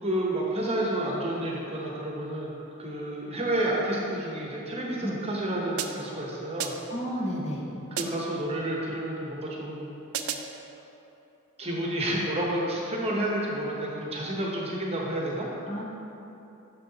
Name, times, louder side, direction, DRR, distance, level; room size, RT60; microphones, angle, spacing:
voice 1, 0.0-2.5 2.8-6.7 7.9-9.9 11.6-15.5, right 1 dB, 30° right, -2 dB, 1.0 m, -30 dB
sound 1, 5.8-6.2 6.6-7.0 8.0-8.4 10.1-10.6, right 8 dB, 80° right, 0.4 m, -34 dB
voice 2, 6.9-7.6 11.8-11.9 15.7-15.8, equal, 30° left, -3 dB, 0.9 m, -32 dB
6.6 x 6.3 x 4.0 m, 2.9 s
head